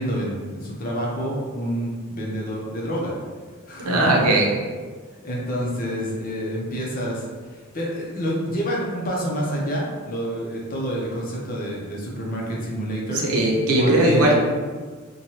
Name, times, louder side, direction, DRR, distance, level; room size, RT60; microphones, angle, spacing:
voice 1, 0.0-3.1 3.7-4.3 5.2-13.2 13.7-14.4, equal, 40° left, -3 dB, 0.6 m, -28 dB
voice 2, 3.8-4.5 13.1-14.4, right 1 dB, 85° right, -2 dB, 0.6 m, -19 dB
3.1 x 2.2 x 2.7 m, 1.5 s
head